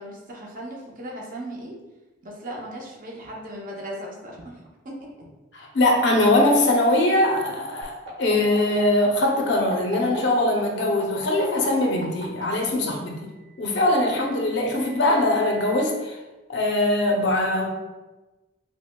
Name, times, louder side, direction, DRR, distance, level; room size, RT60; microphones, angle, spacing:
voice 1, 0.0-1.8 2.2-5.1, right 1 dB, 40° right, -2 dB, 0.7 m, -37 dB
voice 2, 5.5-7.9 8.2-13.3 13.6-16.2 16.5-17.7, left 1 dB, 60° left, 0 dB, 0.6 m, -21 dB
sound 1, 7.8-12.4 13.6-15.8, right 5 dB, 90° right, 1.2 m, -42 dB
5.7 x 2.1 x 2.2 m, 1.1 s
head